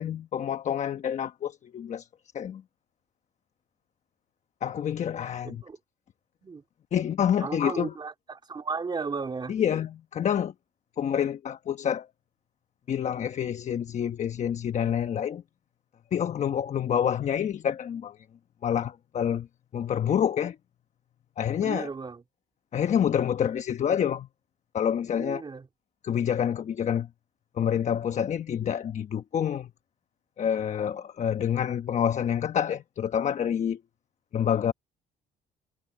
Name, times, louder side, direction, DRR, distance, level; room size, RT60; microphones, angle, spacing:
voice 1, 0.0-2.1 2.3-2.6 4.6-5.6 6.9-7.9 9.5-10.5 11.0-12.1 12.9-15.4 16.1-18.3 18.6-19.5 19.7-20.6 21.4-21.9 22.7-24.3 24.7-25.4 26.0-27.1 27.5-29.7 30.4-33.8 34.3-34.7, left 9 dB, 45° left, 1.1 m, -27 dB
voice 2, 5.4-5.8 6.4-6.6 7.4-9.6 21.6-22.2 25.2-25.7, right 4 dB, 25° right, 3.4 m, -35 dB
cardioid pair, 110°, 17 cm